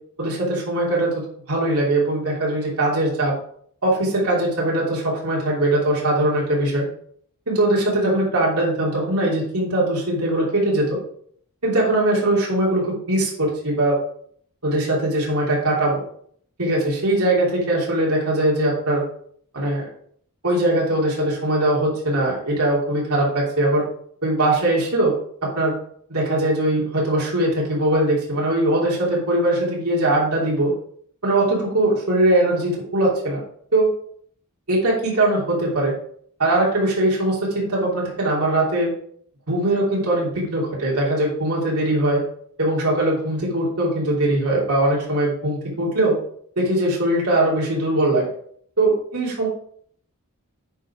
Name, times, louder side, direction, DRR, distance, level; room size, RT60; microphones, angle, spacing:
voice 1, 0.2-3.3 3.8-6.8 7.5-11.0 11.6-14.0 14.6-16.0 16.6-19.0 19.5-19.9 20.4-23.9 24.2-25.2 25.4-25.7 26.1-30.7 31.2-33.4 33.7-33.9 34.7-35.9 36.4-38.9 39.5-42.2 42.6-46.2 46.6-48.3 48.8-49.5, right 1 dB, 80° right, -4 dB, 3.1 m, -21 dB
9.0 x 4.9 x 4.9 m, 0.63 s
head